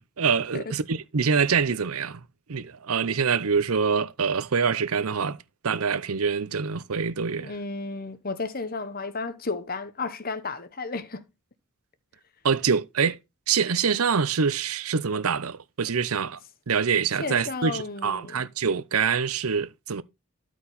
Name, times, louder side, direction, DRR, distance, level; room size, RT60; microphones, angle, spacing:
voice 1, 0.0-2.2 2.5-5.4 5.6-7.5 12.4-13.2 13.5-16.4 16.7-20.0, right 6 dB, 80° right, 0.7 m, -25 dB
voice 2, 7.4-11.2 17.2-18.4, left 3 dB, 40° left, 1.0 m, -33 dB
13.0 x 4.7 x 4.0 m
head